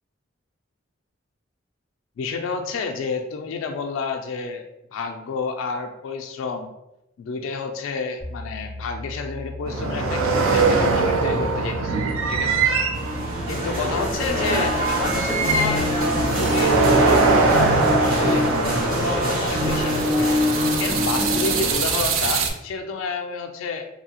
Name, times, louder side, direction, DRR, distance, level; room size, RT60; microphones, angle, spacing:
voice 1, 2.2-4.6 4.9-6.7 7.2-12.0 12.3-12.7 13.0-13.1 13.5-15.9 16.4-20.3 20.8-23.9, left 4 dB, 75° left, 4 dB, 0.3 m, -30 dB
sound 1, 8.2-18.2, left 2 dB, 10° right, 0.6 m, -36 dB
sound 2, 9.7-22.5, right 4 dB, 80° right, 0.4 m, -23 dB
sound 3, 12.9-21.7, left 1 dB, 45° right, 1.2 m, -24 dB
2.8 x 2.7 x 2.8 m, 0.89 s
head